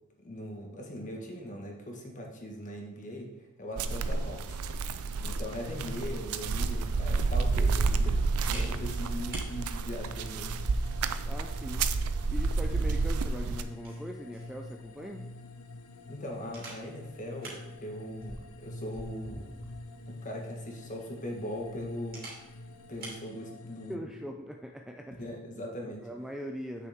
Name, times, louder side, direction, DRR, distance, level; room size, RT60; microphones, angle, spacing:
voice 1, 0.2-4.4 5.2-10.6 16.1-19.5 20.1-22.2 22.9-24.2 25.2-26.1, equal, 35° left, 0 dB, 1.6 m, -40 dB
sound 1, 3.8-13.6, right 4 dB, 85° right, 0.5 m, -30 dB
sound 2, 5.6-24.0, left 2 dB, 80° left, 0.6 m, -46 dB
Camera, 6.6-23.3, right 2 dB, 45° right, 2.6 m, -50 dB
voice 2, 11.3-11.9 12.3-15.3 23.9-25.3 26.0-26.9, equal, 5° right, 3 dB, 0.4 m, -41 dB
8.3 x 6.4 x 3.6 m, 0.98 s
head